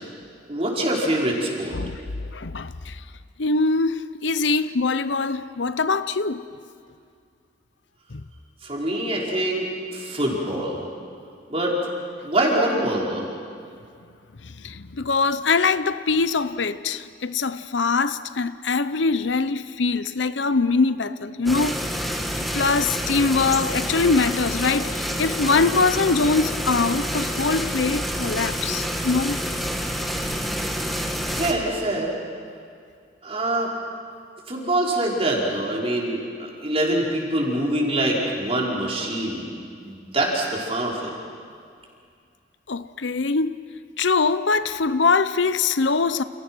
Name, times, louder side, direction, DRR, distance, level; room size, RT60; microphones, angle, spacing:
voice 1, 0.5-1.7 8.6-9.7 9.9-10.9 11.5-11.7 12.2-13.3 31.3-32.1 33.2-33.7 34.5-39.5 39.8-41.1, right 1 dB, 30° right, 5.1 m, -24 dB
voice 2, 2.3-3.0 3.4-6.4 8.1-8.2 14.6-22.0 22.4-29.4 42.7-43.6 44.0-46.2, left 4 dB, 70° left, 0.8 m, -23 dB
sound 1, 21.5-31.5, equal, ahead, 2.1 m, -28 dB
29.5 x 29.5 x 6.3 m
head